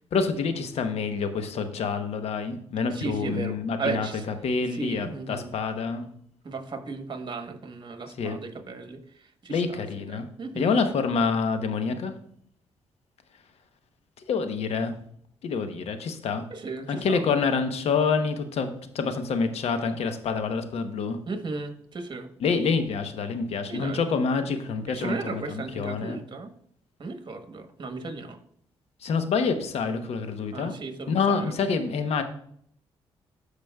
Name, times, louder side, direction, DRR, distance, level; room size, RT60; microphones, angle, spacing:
voice 1, 0.1-4.1 4.4-6.1 8.2-8.4 9.5-10.3 10.6-12.1 14.3-14.9 15.4-16.4 16.9-21.2 22.4-26.2 29.0-30.7 31.1-32.2, left 5 dB, 70° left, 8 dB, 0.9 m, -27 dB
voice 2, 2.9-4.3 4.7-5.5 6.4-10.8 16.5-17.2 21.3-22.3 23.7-24.0 24.9-26.5 27.0-28.4 30.5-31.5, right 4 dB, 45° right, 6 dB, 1.3 m, -35 dB
14.5 x 5.0 x 2.3 m, 0.66 s
supercardioid pair, 55°, 11 cm